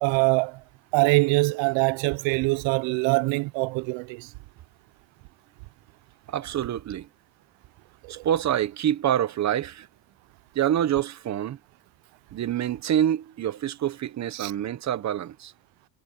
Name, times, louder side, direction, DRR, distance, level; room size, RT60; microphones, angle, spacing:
voice 1, 0.0-0.6 0.9-4.3 8.0-8.2 14.3-14.5, right 25 dB, 85° right, 0.6 m, -23 dB
voice 2, 6.3-7.1 8.1-9.9 10.5-11.6 12.3-15.5, right 10 dB, 40° right, 0.9 m, -26 dB
cardioid pair, 140°, 44 cm